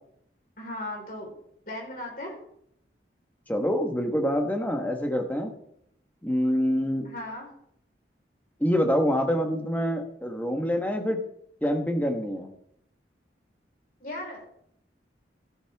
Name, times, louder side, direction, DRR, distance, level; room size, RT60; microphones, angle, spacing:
voice 1, 0.6-1.3 1.7-2.4 7.0-7.5 14.0-14.5, left 1 dB, 50° left, -1 dB, 4.5 m, -37 dB
voice 2, 3.5-5.5 6.2-7.1 8.6-11.2 11.6-12.5, equal, 10° left, 4 dB, 1.5 m, -26 dB
15.0 x 9.6 x 3.6 m, 0.71 s
head